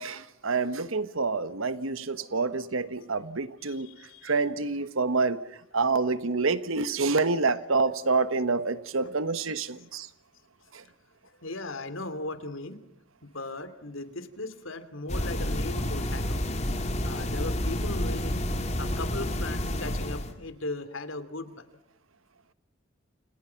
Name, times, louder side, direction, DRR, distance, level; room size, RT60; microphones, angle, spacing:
voice 1, 0.0-3.9 4.2-5.4 5.7-10.1, right 4 dB, 80° right, 13 dB, 1.3 m, -27 dB
voice 2, 3.6-4.3 7.3-7.4 9.0-9.1 9.9-10.0 11.4-12.8 13.2-16.4 17.0-18.4 18.8-21.6, left 2 dB, 75° left, 12 dB, 2.9 m, -38 dB
sound 1, 15.1-20.3, left 1 dB, 35° left, 3.0 m, -29 dB
29.0 x 28.5 x 5.9 m, 0.79 s
head